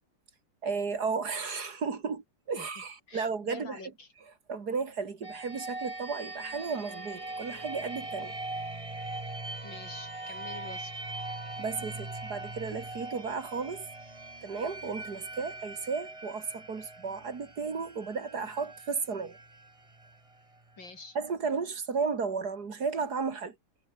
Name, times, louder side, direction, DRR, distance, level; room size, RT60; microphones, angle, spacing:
voice 1, 0.6-3.8 4.5-8.4 11.6-13.9 14.4-19.4 21.1-23.6, right 5 dB, 55° right, 2.8 m, -34 dB
voice 2, 3.1-4.1 9.6-11.0 20.8-21.2, left 3 dB, 90° left, 6.0 m, -46 dB
sound 1, 5.2-20.9, right 2 dB, 15° right, 2.2 m, -41 dB
omnidirectional pair, 2.0 m